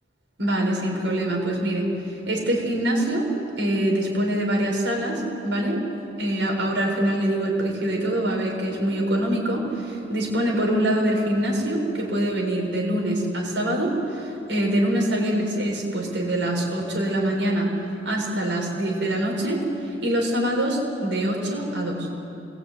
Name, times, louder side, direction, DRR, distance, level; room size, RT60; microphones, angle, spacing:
voice 1, 0.4-1.9 2.3-3.3 3.6-5.8 6.2-17.7 18.0-19.6 20.0-22.1, right 1 dB, 90° right, -1 dB, 6.9 m, -24 dB
28.0 x 21.0 x 9.8 m, 2.9 s
head